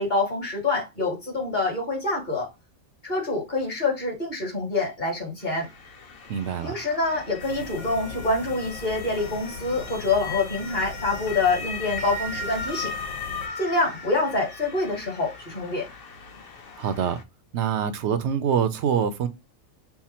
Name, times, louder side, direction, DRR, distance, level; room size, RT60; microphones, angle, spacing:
voice 1, 0.0-2.5 3.0-5.7 6.6-12.9 13.6-15.9, left 3 dB, 35° left, 1.8 m, -26 dB
Motor vehicle (road) / Siren, 5.4-17.2, left 3 dB, 50° left, 0.8 m, -38 dB
voice 2, 6.3-6.7 16.8-17.2 17.5-19.3, right 8 dB, 65° right, 0.8 m, -25 dB
sound 1, 7.4-13.5, left 3 dB, 80° left, 1.6 m, -40 dB
5.7 x 2.2 x 4.2 m
omnidirectional pair, 1.4 m